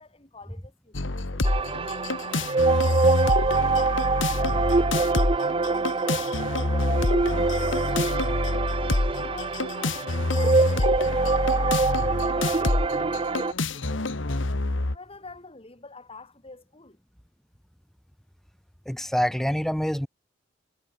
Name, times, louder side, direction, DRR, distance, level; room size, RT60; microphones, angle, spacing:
voice 1, 0.0-2.8 3.2-8.7 9.1-14.5 14.9-17.0, left 3 dB, 30° left, 3.4 m, -48 dB
sound 1, 0.9-15.0, left 2 dB, 80° left, 1.5 m, -27 dB
sound 2, 1.4-13.5, right 4 dB, 30° right, 0.6 m, -25 dB
voice 2, 18.9-20.1, equal, ahead, 0.8 m, -26 dB
head